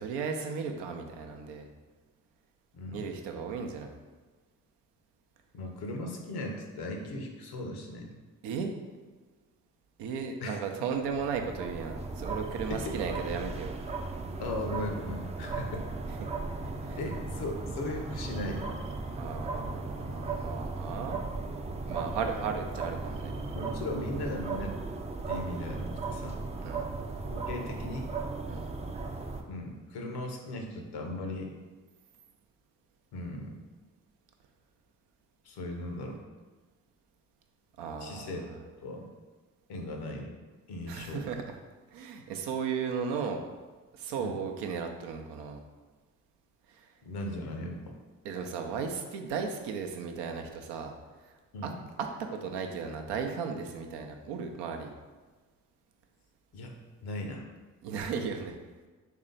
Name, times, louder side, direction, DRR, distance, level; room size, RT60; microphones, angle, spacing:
voice 1, 0.0-1.7 2.9-3.9 8.4-8.7 10.0-13.7 16.2-16.3 16.8-17.0 19.1-21.2 21.9-23.4 26.6-26.9 28.5-28.7 37.8-38.6 40.9-41.4 41.9-43.4 44.0-45.6 48.2-50.9 51.6-51.7 52.2-54.9 57.8-58.6, right 6 dB, 80° right, 4 dB, 0.5 m, -35 dB
voice 2, 2.7-3.1 5.5-8.1 10.4-10.6 12.7-13.0 14.4-15.9 17.0-18.7 19.6-19.7 23.5-24.8 25.3-26.4 27.3-28.1 29.5-31.5 33.1-33.6 35.4-36.2 38.0-38.5 38.8-39.1 39.7-40.3 40.7-41.3 44.2-44.4 47.0-48.0 51.5-51.8 56.5-56.8 57.0-57.5, left 1 dB, 70° left, 3 dB, 0.7 m, -37 dB
sound 1, 10.9-29.4, right 3 dB, 15° right, 0.4 m, -36 dB
3.2 x 2.8 x 3.8 m, 1.3 s
hypercardioid pair, 45°, 40 cm